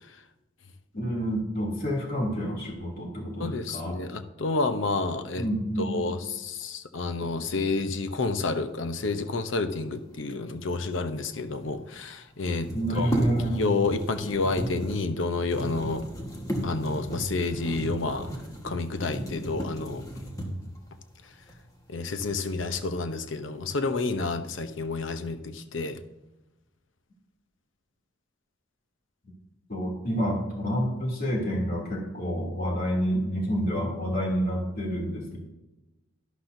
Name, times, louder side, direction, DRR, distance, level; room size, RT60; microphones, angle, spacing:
voice 1, 0.9-3.9 5.4-6.0 12.7-13.7 29.7-35.4, equal, 50° left, -2 dB, 2.8 m, -28 dB
voice 2, 3.4-5.4 5.8-13.1 13.5-16.1 16.6-18.3 18.6-20.0 21.9-26.0, left 3 dB, 75° left, 9 dB, 0.8 m, -29 dB
sound 1, 11.0-11.1 11.2-11.3 12.4-20.8 21.5-21.6 22.0-22.7 23.0-23.6, equal, 15° left, 1.4 m, -34 dB
12.0 x 11.5 x 2.7 m, 1.0 s
head